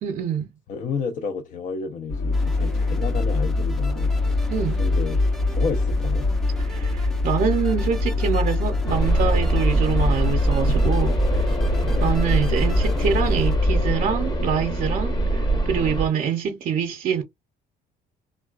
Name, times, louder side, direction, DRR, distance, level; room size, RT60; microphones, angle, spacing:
voice 1, 0.0-0.4 4.5-4.8 6.6-11.2 12.0-17.2, right 7 dB, 55° right, 0.6 m, -25 dB
voice 2, 0.7-5.2 5.6-6.3 10.7-10.8 11.9-12.1, left 5 dB, 50° left, 0.5 m, -31 dB
sound 1, 2.1-13.9, left 3 dB, 80° left, 2.2 m, -23 dB
sound 2, 2.3-13.6, right 1 dB, 5° left, 0.5 m, -39 dB
sound 3, 8.9-16.1, right 2 dB, 25° left, 0.9 m, -24 dB
3.5 x 2.2 x 2.4 m
cardioid pair, 110°, 17 cm